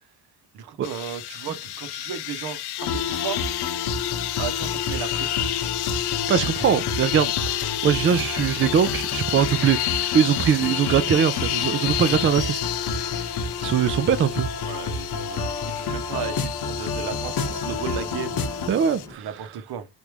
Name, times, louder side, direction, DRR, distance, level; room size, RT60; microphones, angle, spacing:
voice 1, 0.5-3.4 4.3-5.5 14.6-18.9 19.2-19.9, right 8 dB, 65° right, 0.8 m, -35 dB
sound 1, 0.8-19.1, left 14 dB, 75° left, 0.5 m, -31 dB
sound 2, 2.8-18.7, left 4 dB, 60° left, 0.9 m, -30 dB
voice 2, 6.3-13.3 13.6-14.5 18.7-19.3, right 8 dB, 35° right, 0.4 m, -22 dB
sound 3, 10.3-19.2, left 1 dB, 10° left, 1.1 m, -47 dB
3.4 x 2.6 x 3.0 m
cardioid pair, 80°, 40 cm